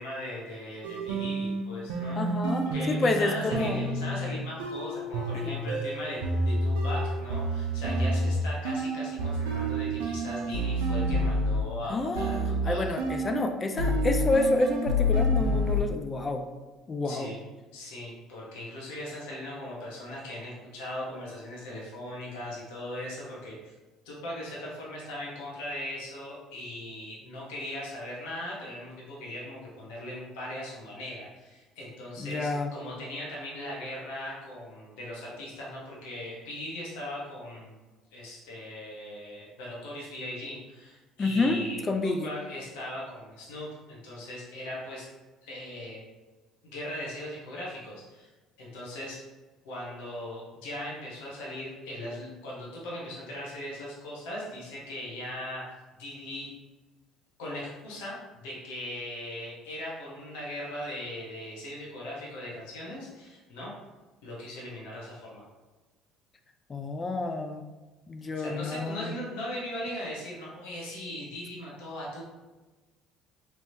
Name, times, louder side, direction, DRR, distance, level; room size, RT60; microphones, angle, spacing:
voice 1, 0.0-2.2 2.7-6.2 6.4-12.8 17.0-17.4 17.7-23.7 24.0-37.7 38.1-45.1 45.4-46.0 46.6-48.3 48.6-49.2 49.6-55.6 56.0-56.5 57.4-58.2 58.4-63.7 64.2-65.4 68.3-72.2, left 1 dB, 75° left, -5 dB, 1.1 m, -39 dB
sound 1, 0.8-11.8 12.2-13.5 13.8-15.8, equal, 80° right, 0.4 m, -29 dB
voice 2, 2.1-3.8 5.3-5.6 11.9-12.4 12.6-16.5 16.9-17.3 32.2-32.7 41.2-41.6 41.9-42.3 66.7-67.6 68.1-69.1, left 2 dB, 30° left, 5 dB, 0.4 m, -29 dB
3.3 x 3.0 x 2.7 m, 1.2 s
hypercardioid pair, 65°, 0 cm